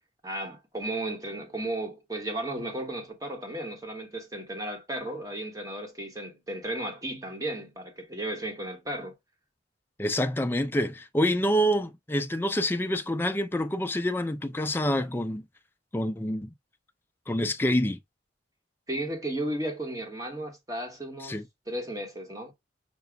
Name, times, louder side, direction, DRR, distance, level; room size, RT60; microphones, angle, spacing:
voice 1, 0.2-9.2 18.9-22.5, right 1 dB, 20° right, 1.2 m, -34 dB
voice 2, 10.0-15.4 15.9-16.5 17.3-18.0 21.2-21.5, equal, 10° left, 0.4 m, -27 dB
6.0 x 2.4 x 3.4 m
head